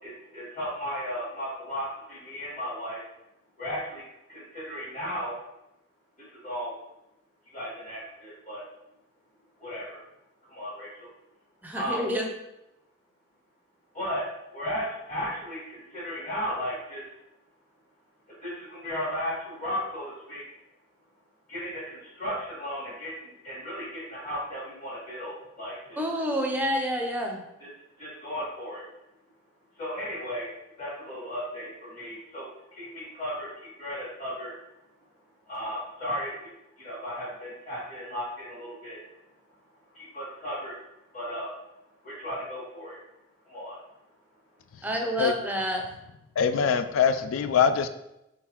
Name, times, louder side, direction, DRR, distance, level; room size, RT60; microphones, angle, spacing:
voice 1, 0.0-3.0 3.6-4.0 4.3-5.3 6.4-6.7 7.5-8.6 9.6-10.0 10.5-11.1 11.7-12.0 13.9-14.2 14.5-17.0 18.4-20.4 21.5-23.1 23.4-26.0 27.6-27.7 28.0-28.8 29.8-30.5 30.8-32.5 32.8-34.5 35.5-36.5 36.8-39.0 39.9-40.7 41.1-41.5 42.0-43.0 43.5-43.8, equal, 35° left, -11 dB, 1.6 m, -35 dB
voice 2, 11.6-12.3 26.0-27.4 44.8-45.9, equal, 10° right, 2 dB, 0.4 m, -28 dB
voice 3, 46.4-47.9, left 7 dB, 85° left, 11 dB, 0.3 m, -23 dB
3.8 x 3.8 x 2.9 m, 0.88 s
head